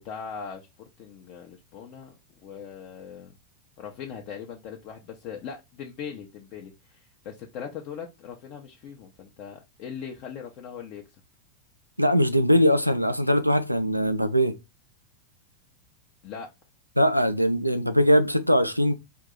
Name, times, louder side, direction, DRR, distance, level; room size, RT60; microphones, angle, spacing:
voice 1, 0.0-2.2 2.4-3.3 3.8-11.0 16.2-16.5, left 7 dB, 40° left, 0.7 m, -40 dB
voice 2, 12.0-14.6 17.0-18.9, equal, 90° right, 0.5 m, -21 dB
4.6 x 2.7 x 3.7 m
figure-of-eight pair, 90°, 0 cm